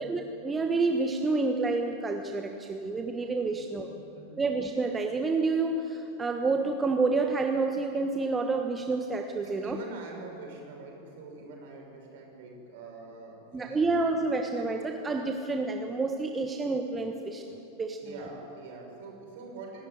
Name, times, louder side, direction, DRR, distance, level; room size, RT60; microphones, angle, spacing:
voice 1, 0.0-3.9 4.4-9.8 13.5-17.4 17.7-18.0, right 3 dB, 15° right, 4 dB, 1.3 m, -29 dB
voice 2, 3.5-4.4 9.4-14.2 18.0-19.8, right 3 dB, 50° right, 1 dB, 6.4 m, -45 dB
25.0 x 13.0 x 9.7 m, 2.8 s
figure-of-eight pair, 90°, 0 cm